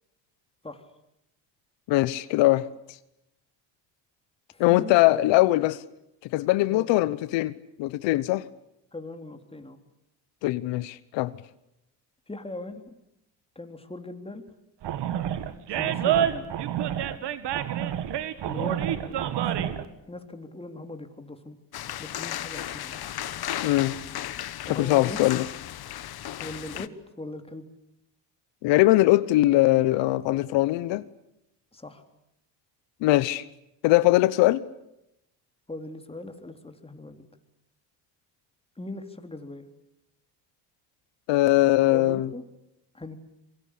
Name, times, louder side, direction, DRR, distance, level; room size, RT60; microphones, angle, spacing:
voice 1, 1.9-2.7 4.6-5.8 6.3-7.5 7.8-8.5 10.4-11.3 23.6-24.0 24.7-25.5 28.6-31.0 33.0-33.4 33.8-34.6 41.3-42.3, left 17 dB, 85° left, 16 dB, 1.0 m, -21 dB
voice 2, 4.5-5.2 6.7-6.9 8.9-9.8 12.3-12.9 13.6-14.6 15.7-16.5 18.5-19.8 20.1-21.6 22.0-23.0 24.7-25.2 26.4-27.7 31.7-32.0 35.7-37.3 38.8-39.7 41.9-42.4 42.9-43.2, left 2 dB, 15° left, 6 dB, 3.6 m, -40 dB
Animal, 14.8-19.9, right 10 dB, 70° right, 2.0 m, -28 dB
sound 1, 21.7-26.9, left 12 dB, 60° left, 1.3 m, -35 dB
26.5 x 23.5 x 8.5 m, 0.85 s
cardioid pair, 90°, 43 cm